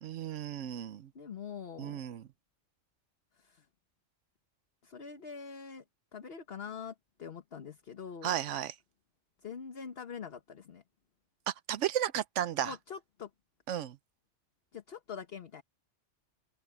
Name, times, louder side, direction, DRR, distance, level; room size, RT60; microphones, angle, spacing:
voice 1, 0.0-1.1 1.8-2.2 8.2-8.7 11.5-12.7 13.7-14.0, right 11 dB, 90° right, 1.1 m, -34 dB
voice 2, 1.1-2.0 3.4-3.7 4.8-5.8 6.1-8.3 9.4-10.8 12.6-13.3 14.7-15.6, left 6 dB, 55° left, 1.4 m, -44 dB
omnidirectional pair, 1.2 m